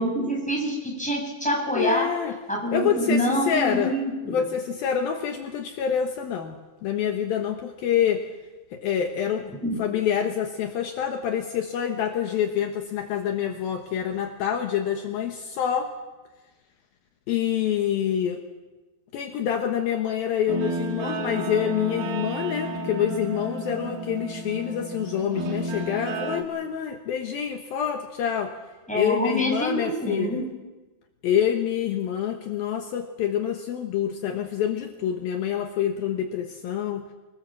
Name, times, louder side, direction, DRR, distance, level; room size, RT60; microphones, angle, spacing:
voice 1, 0.0-2.1 2.5-4.4 9.6-9.8 28.9-30.4, equal, ahead, -1 dB, 6.2 m, -26 dB
voice 2, 1.7-2.4 2.7-4.0 4.3-6.6 6.8-8.3 8.7-9.5 9.8-15.9 17.3-18.4 19.1-28.5 28.9-30.4 31.2-37.1, left 9 dB, 70° left, 4 dB, 2.9 m, -26 dB
Guitar, 20.5-26.4, right 2 dB, 70° right, 3.7 m, -32 dB
25.0 x 20.0 x 7.4 m, 1.2 s
omnidirectional pair, 4.7 m